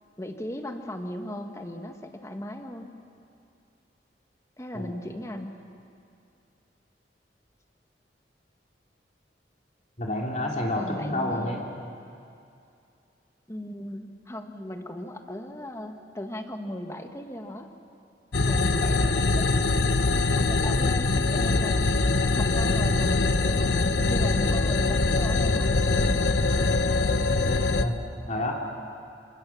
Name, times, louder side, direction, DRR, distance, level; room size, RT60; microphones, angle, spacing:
voice 1, 0.2-2.9 4.6-5.5 10.7-11.6 13.5-17.7 18.5-19.5 20.3-22.1 22.3-25.7, left 1 dB, 15° left, 4 dB, 1.7 m, -37 dB
voice 2, 10.0-11.6 18.4-18.5 18.8-19.2 27.8-28.5, left 1 dB, 45° left, -1 dB, 3.0 m, -30 dB
sound 1, 18.3-27.8, left 3 dB, 90° left, 1.1 m, -23 dB
27.5 x 25.5 x 7.2 m, 2.6 s
head